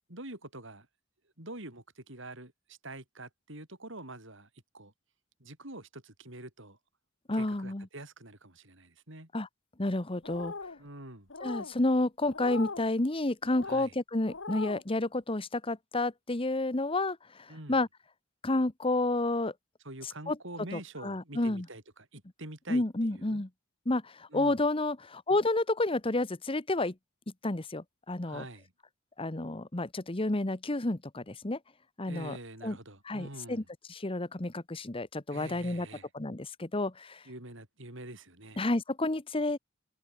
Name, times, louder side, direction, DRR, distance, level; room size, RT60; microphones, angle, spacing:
voice 1, 0.1-0.9 1.4-4.5 4.7-4.9 5.4-6.8 7.3-9.3 10.8-11.3 13.7-13.9 17.5-17.8 19.8-22.8 23.1-23.4 24.3-24.6 28.2-28.7 32.1-33.7 35.3-36.1 37.3-38.6, right 1 dB, 65° right, 7.1 m, -46 dB
voice 2, 7.3-7.9 9.3-9.5 9.8-10.5 11.4-17.9 18.4-19.5 20.3-20.4 20.7-21.7 22.7-23.5 23.9-26.9 27.4-28.4 29.2-31.6 32.0-32.4 32.6-32.8 33.0-33.6 33.9-35.9 36.1-37.2 38.6-39.6, left 2 dB, 25° left, 1.1 m, -30 dB
sound 1, 10.2-10.8 11.3-11.7 12.3-12.9 13.4-13.8 14.3-14.8, left 4 dB, 60° left, 1.6 m, -40 dB
head